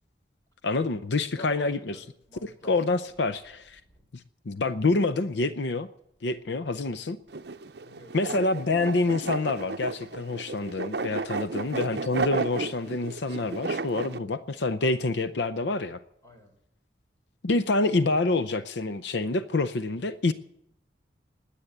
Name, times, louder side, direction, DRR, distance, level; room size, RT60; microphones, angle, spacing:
voice 1, 0.6-2.0 2.4-3.8 4.5-5.9 6.2-7.2 8.1-16.0 17.4-20.3, left 3 dB, 80° left, 13 dB, 0.7 m, -27 dB
voice 2, 1.3-3.0 3.8-4.1 7.8-8.2 11.3-11.5 16.2-16.5, left 1 dB, 20° left, 3 dB, 3.7 m, -49 dB
sound 1, 7.3-14.2, right 3 dB, 65° right, 0.7 m, -33 dB
20.0 x 8.6 x 8.0 m, 0.77 s
head